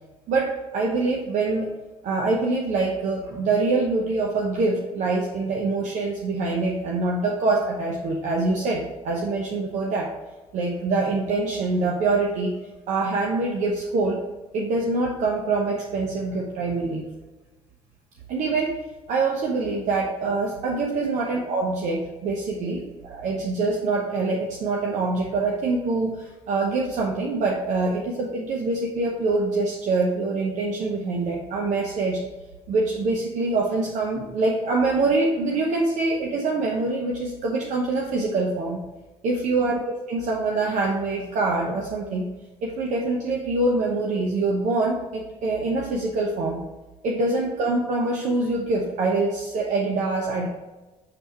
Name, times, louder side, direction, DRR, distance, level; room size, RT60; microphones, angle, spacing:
voice 1, 0.3-1.7 2.0-10.1 10.5-12.6 12.9-14.2 14.5-17.1 18.3-18.8 19.1-32.2 32.7-38.8 39.2-42.3 42.6-46.6 47.0-50.5, right 3 dB, 70° right, -1 dB, 0.9 m, -25 dB
7.0 x 3.5 x 4.3 m, 1.2 s
supercardioid pair, 70°, 13 cm